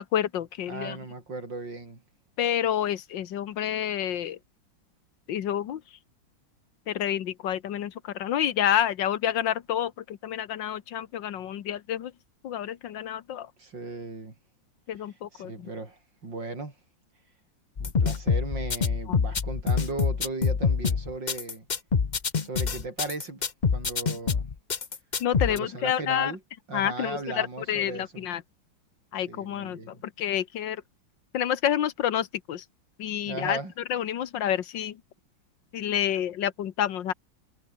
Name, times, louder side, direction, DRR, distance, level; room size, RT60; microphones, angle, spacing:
voice 1, 0.0-1.0 2.4-4.4 5.3-5.8 6.9-12.1 12.4-13.5 14.9-15.7 19.1-19.2 25.2-26.3 26.7-28.4 29.1-30.8 31.3-32.6 33.0-33.6 33.9-35.0 35.7-37.1, left 10 dB, 70° left, 1.7 m, -29 dB
voice 2, 0.7-2.0 13.6-14.3 15.3-16.7 17.8-21.7 22.4-23.4 23.7-24.5 25.5-26.4 26.7-28.3 29.3-30.0 33.3-33.7, right 3 dB, 65° right, 5.7 m, -37 dB
sound 1, 17.8-25.6, left 5 dB, 35° left, 0.7 m, -26 dB
omnidirectional pair, 2.2 m